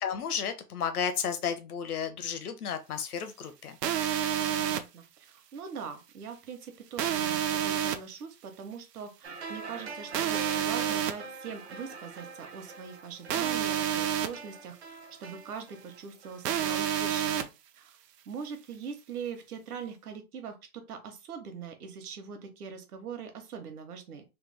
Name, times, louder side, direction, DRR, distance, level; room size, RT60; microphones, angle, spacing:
voice 1, 0.0-3.8, left 7 dB, 65° left, 0.8 m, -33 dB
sound 1, 3.8-4.8 7.0-8.0 10.1-11.1 13.3-14.3 16.4-17.4, right 10 dB, 85° right, 0.7 m, -28 dB
voice 2, 4.3-14.8 15.2-17.5 17.7-17.9 18.3-24.2, right 6 dB, 65° right, 1.0 m, -42 dB
sound 2, 9.2-16.9 17.2-17.3, right 4 dB, 45° right, 0.5 m, -45 dB
3.3 x 2.2 x 3.3 m
hypercardioid pair, 175°, 47 cm